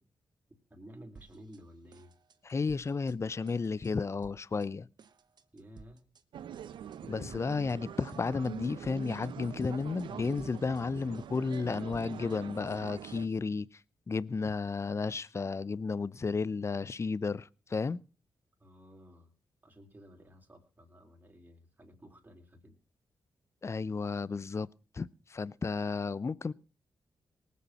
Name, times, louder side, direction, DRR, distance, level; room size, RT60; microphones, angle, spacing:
voice 1, 0.7-2.1 5.5-6.0 18.6-19.3 19.6-22.8, equal, 20° right, 3.9 m, -53 dB
sound 1, 1.2-1.6 1.9-3.2 3.5-3.9 4.2-4.7 5.0-6.2 6.5-7.0 7.3-7.8 8.1-9.3 9.6-10.1 10.4-13.4, right 5 dB, 60° right, 1.2 m, -57 dB
voice 2, 2.4-4.9 7.1-13.7 14.1-18.0 23.6-24.7 24.9-26.5, left 4 dB, 35° left, 0.6 m, -33 dB
sound 2, 6.3-13.3, right 9 dB, 85° right, 0.7 m, -44 dB
19.0 x 8.4 x 5.9 m
cardioid pair, 65°, 8 cm